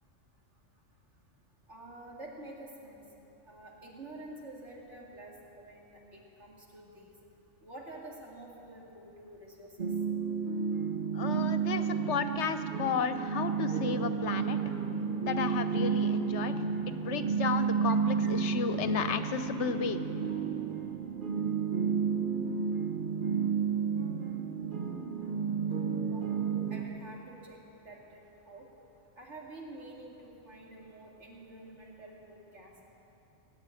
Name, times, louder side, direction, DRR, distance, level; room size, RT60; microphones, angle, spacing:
voice 1, 1.7-3.0 3.4-7.1 7.6-9.9 13.1-13.2 13.7-13.8 18.2-18.3 26.1-26.4 26.7-27.6 27.8-28.7 29.2-32.7, right 2 dB, 65° right, -3 dB, 2.8 m, -48 dB
sound 1, 9.8-26.8, right 6 dB, 45° right, 1.0 m, -31 dB
voice 2, 11.1-14.6 15.2-16.5 16.9-20.0, left 6 dB, 70° left, 10 dB, 1.0 m, -33 dB
18.0 x 8.0 x 9.7 m, 2.9 s
omnidirectional pair, 1.3 m